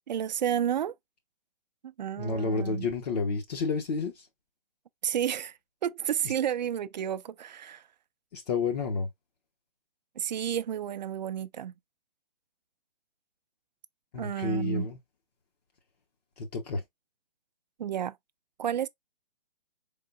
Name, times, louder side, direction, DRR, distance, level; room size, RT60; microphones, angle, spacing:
voice 1, 0.1-0.9 1.8-2.9 5.0-7.8 10.2-11.7 14.2-14.9 17.8-18.2 18.6-18.9, right 9 dB, 50° right, 0.4 m, -31 dB
voice 2, 2.2-4.3 8.3-9.1 14.1-15.0 16.4-16.8, left 4 dB, 45° left, 1.0 m, -30 dB
4.4 x 3.7 x 2.4 m
hypercardioid pair, 145°, 29 cm